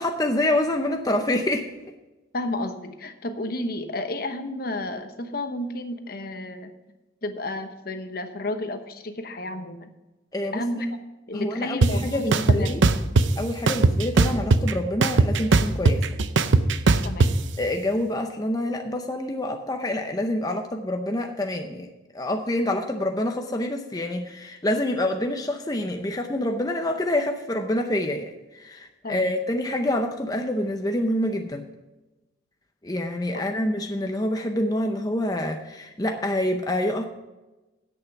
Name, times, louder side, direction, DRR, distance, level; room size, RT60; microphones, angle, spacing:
voice 1, 0.0-1.7 10.3-10.6 11.3-12.8 13.4-16.1 17.6-21.9 22.1-31.7 32.8-37.0, left 1 dB, 20° left, 4 dB, 0.6 m, -27 dB
voice 2, 2.3-6.7 7.2-9.9 10.5-10.9 11.3-12.8 17.0-17.4 29.0-29.3 33.3-33.4, left 1 dB, 50° left, 7 dB, 1.0 m, -31 dB
sound 1, 11.8-11.9 12.3-13.3 13.7-14.7 15.0-17.3, right 3 dB, 85° right, 0.6 m, -18 dB
10.0 x 8.4 x 5.9 m, 1.1 s
head